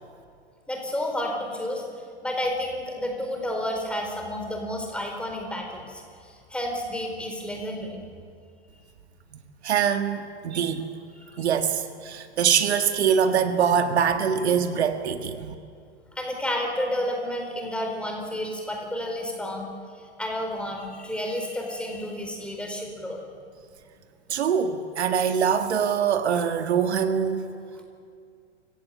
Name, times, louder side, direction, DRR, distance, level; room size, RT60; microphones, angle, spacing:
voice 1, 0.7-1.8 2.2-8.0 16.1-19.7 20.2-23.2, left 1 dB, 5° left, 1 dB, 4.4 m, -31 dB
voice 2, 9.6-10.9 11.4-15.5 24.3-27.5, right 7 dB, 75° right, 7 dB, 1.9 m, -23 dB
28.0 x 16.5 x 8.3 m, 2.3 s
hypercardioid pair, 120°, 33 cm